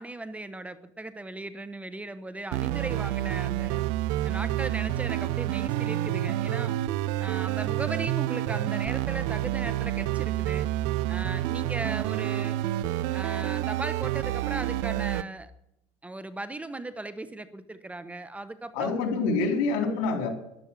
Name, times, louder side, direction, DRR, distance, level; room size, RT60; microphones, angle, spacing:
voice 1, 0.0-3.8 4.2-6.8 7.2-10.7 11.1-12.6 13.1-15.5 16.0-18.9, right 2 dB, 10° right, 12 dB, 1.0 m, -37 dB
sound 1, 2.5-15.2, right 15 dB, 85° right, 0.6 m, -28 dB
voice 2, 18.7-20.3, left 4 dB, 80° left, 3 dB, 4.0 m, -26 dB
12.0 x 12.0 x 7.4 m, 0.80 s
supercardioid pair, 115°, 12 cm